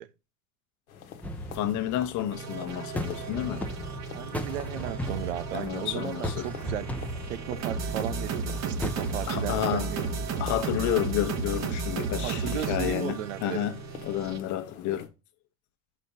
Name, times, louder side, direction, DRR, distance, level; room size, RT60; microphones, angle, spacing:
sound 1, 0.9-15.1, left 7 dB, 75° left, 1.2 m, -46 dB
sound 2, 1.2-9.2, equal, 5° left, 0.9 m, -37 dB
voice 1, 1.5-3.7 5.5-6.5 9.3-9.9 10.4-13.7 14.0-15.1, left 11 dB, 45° left, 1.1 m, -30 dB
sound 3, 2.3-14.4, right 4 dB, 40° right, 1.4 m, -34 dB
voice 2, 4.1-6.9 7.3-10.2 12.2-13.7, right 12 dB, 65° right, 0.6 m, -35 dB
6.5 x 4.4 x 5.0 m
figure-of-eight pair, 75°, 42 cm